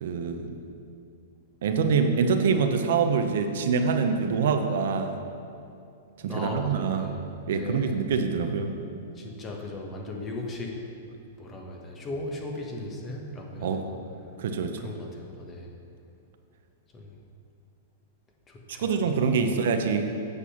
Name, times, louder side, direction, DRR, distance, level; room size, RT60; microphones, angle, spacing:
voice 1, 0.0-0.6 1.6-5.2 6.2-7.1 7.5-8.8 13.6-13.8 14.4-14.9 18.8-20.1, right 5 dB, 70° right, 6 dB, 0.8 m, -25 dB
voice 2, 6.2-7.2 7.5-8.0 9.2-10.8 11.4-14.0 14.8-15.7 16.9-17.2 18.5-19.6, left 2 dB, 20° left, 1 dB, 1.4 m, -38 dB
8.6 x 6.8 x 5.8 m, 2.5 s
hypercardioid pair, 130°, 0 cm